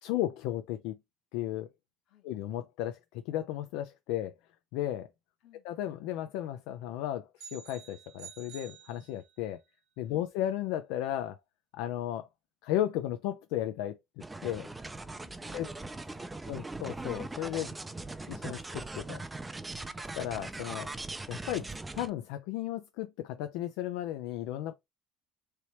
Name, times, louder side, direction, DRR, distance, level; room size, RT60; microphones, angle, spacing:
voice 1, 0.0-1.0 1.3-1.7 2.2-4.3 4.7-5.1 5.6-9.6 10.0-11.4 11.7-12.3 12.6-14.7 15.5-15.7 16.5-17.7 18.3-19.2 20.2-20.9 21.3-21.7 21.9-24.7, left 12 dB, 75° left, 0.4 m, -34 dB
sound 1, 7.4-9.6, right 7 dB, 80° right, 0.9 m, -50 dB
sound 2, 14.2-22.1, right 2 dB, 10° right, 0.4 m, -40 dB
voice 2, 15.0-16.7 19.7-20.0, left 10 dB, 60° left, 1.4 m, -63 dB
3.2 x 2.9 x 4.3 m
cardioid pair, 135°, 0 cm